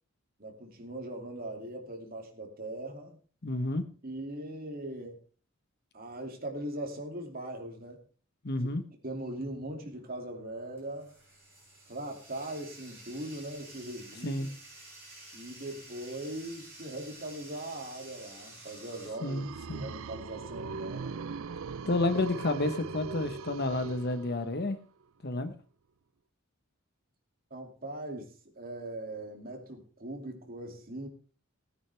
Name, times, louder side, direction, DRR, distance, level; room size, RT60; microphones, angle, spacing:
voice 1, 0.4-3.2 4.0-5.2 5.9-8.0 9.0-11.1 11.9-14.5 15.3-21.2 27.5-31.1, right 1 dB, 45° right, 2 dB, 2.6 m, -40 dB
voice 2, 3.4-3.8 8.4-8.8 14.2-14.5 19.2-19.8 21.9-24.8 25.2-25.5, left 2 dB, 50° left, 9 dB, 1.2 m, -30 dB
Bathtub (filling or washing), 9.9-19.1, right 1 dB, 15° right, 6.6 m, -51 dB
sound 1, 18.8-24.7, right 5 dB, 80° right, 0.5 m, -40 dB
17.5 x 9.5 x 3.5 m, 0.40 s
head